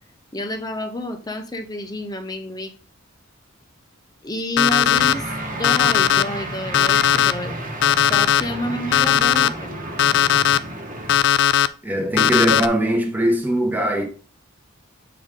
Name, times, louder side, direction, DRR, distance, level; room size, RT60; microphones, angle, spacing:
voice 1, 0.3-2.7 4.2-7.6 8.1-9.9, left 1 dB, 20° left, 0.7 m, -29 dB
Alarm, 4.6-5.1 5.6-6.2 6.7-7.3 7.8-8.4 8.9-9.5 10.0-10.6 11.1-11.7 12.2-12.7, left 9 dB, 55° left, 0.3 m, -17 dB
sound 1, 4.9-11.2, right 1 dB, 40° right, 1.2 m, -32 dB
voice 2, 11.8-14.0, right 1 dB, 10° right, 1.0 m, -21 dB
7.6 x 3.9 x 3.7 m
head